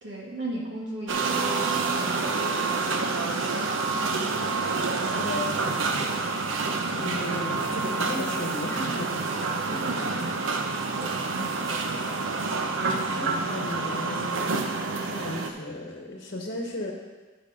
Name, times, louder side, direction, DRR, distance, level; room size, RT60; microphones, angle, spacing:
voice 1, 0.0-4.2 4.9-5.8 9.3-10.3 11.0-12.2, right 1 dB, 70° right, -4 dB, 2.1 m, -38 dB
sound 1, 1.1-15.5, right 4 dB, 90° right, 0.8 m, -28 dB
voice 2, 5.1-5.5 6.9-9.3 9.7-9.8 12.9-14.7 15.1-16.9, left 1 dB, 50° left, 0 dB, 1.2 m, -35 dB
11.5 x 5.0 x 5.1 m, 1.3 s
head